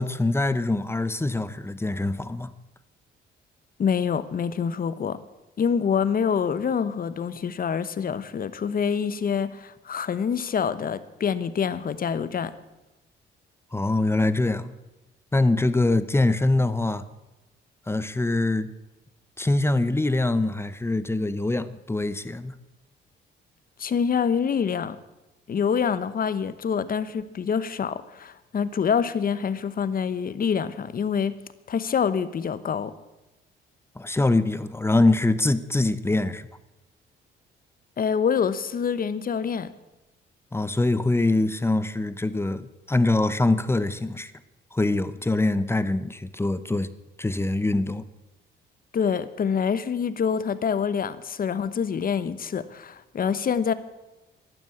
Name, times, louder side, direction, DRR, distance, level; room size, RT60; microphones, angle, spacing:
voice 1, 0.0-2.5 13.7-14.7 15.3-17.0 17.9-18.7 19.4-22.5 34.0-36.5 40.5-44.3 44.7-46.9 47.2-48.0, left 2 dB, 10° left, 0.9 m, -24 dB
voice 2, 3.8-5.2 5.6-12.5 23.8-25.0 25.5-31.3 31.7-32.9 38.0-39.7 48.9-53.7, left 7 dB, 45° left, 1.1 m, -26 dB
12.0 x 11.0 x 8.7 m
cardioid pair, 90°, 20 cm